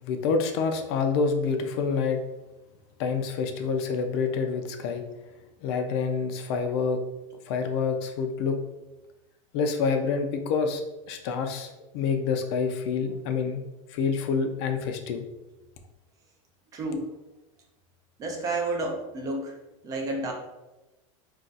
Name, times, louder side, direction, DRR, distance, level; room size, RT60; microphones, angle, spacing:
voice 1, 0.0-2.2 3.0-5.0 5.6-7.0 7.5-8.6 9.5-10.8 11.1-13.6 13.9-15.2, left 5 dB, 50° left, 6 dB, 0.4 m, -27 dB
voice 2, 16.7-17.1 18.2-19.6 19.8-20.3, right 2 dB, 20° right, 2 dB, 0.3 m, -30 dB
2.4 x 2.3 x 3.9 m, 1.0 s
supercardioid pair, 155°, 17 cm